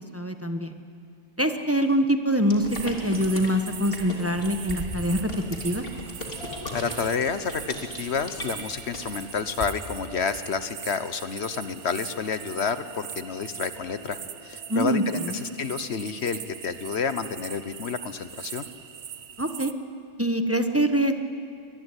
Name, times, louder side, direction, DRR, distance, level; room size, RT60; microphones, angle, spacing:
voice 1, 0.1-0.8 1.4-5.3 5.6-5.8 14.7-15.4 19.4-19.7 20.2-21.2, equal, 15° right, 7 dB, 1.3 m, -24 dB
sound 1, 2.5-9.6, left 1 dB, 55° left, 3.3 m, -38 dB
sound 2, 2.7-19.7, right 8 dB, 70° right, 1.1 m, -41 dB
sound 3, 6.3-19.6, left 1 dB, 30° right, 7.0 m, -50 dB
voice 2, 6.7-7.6 8.0-14.2 14.4-18.7, left 6 dB, 70° left, 12 dB, 1.3 m, -29 dB
24.5 x 20.5 x 9.9 m, 2.3 s
omnidirectional pair, 1.1 m